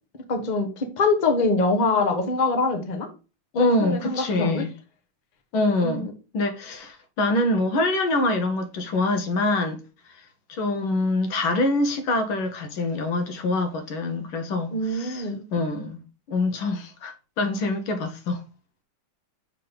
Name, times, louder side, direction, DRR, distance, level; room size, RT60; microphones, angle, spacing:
voice 1, 0.3-3.1 3.6-4.6 5.8-6.1 14.7-15.4, left 3 dB, 30° left, 0.9 m, -24 dB
voice 2, 3.5-4.7 5.5-6.1 6.3-9.8 10.5-15.3 15.5-16.0 16.3-18.4, left 2 dB, 70° left, 1.8 m, -25 dB
6.7 x 3.7 x 5.5 m
omnidirectional pair, 2.4 m